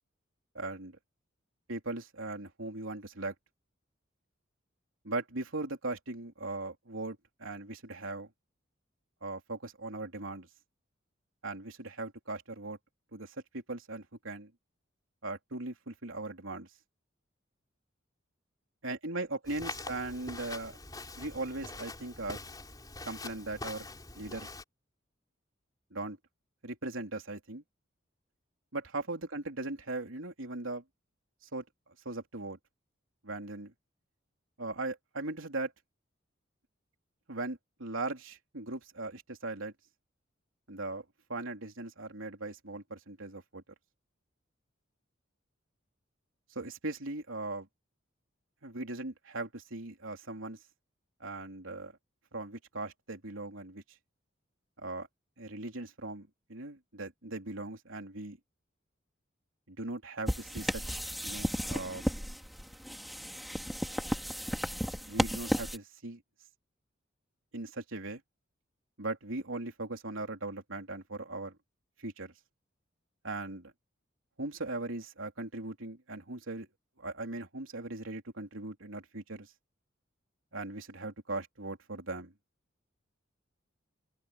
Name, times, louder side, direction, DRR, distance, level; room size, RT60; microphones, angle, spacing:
voice 1, 0.6-0.9 1.7-3.3 5.0-8.3 9.2-10.5 11.4-12.8 13.1-14.5 15.2-16.7 18.8-20.8 21.2-22.4 23.0-23.9 24.1-24.5 25.9-26.2 26.6-27.6 28.7-30.8 31.5-31.7 32.1-32.6 33.2-33.7 34.6-35.7 37.3-39.7 40.7-43.6 46.6-47.7 48.6-50.6 51.2-51.9 52.3-53.8 54.8-55.1 55.4-58.4 59.7-62.0 65.1-66.2 67.5-68.2 69.0-71.5 72.0-72.3 73.2-73.7 74.4-76.7 77.0-79.5 80.5-82.3, right 2 dB, 85° right, 3.4 m, -39 dB
Walk footsteps, 19.4-24.6, left 3 dB, 20° left, 5.2 m, -44 dB
sound 1, 60.3-65.8, equal, ahead, 2.9 m, -34 dB
open air
head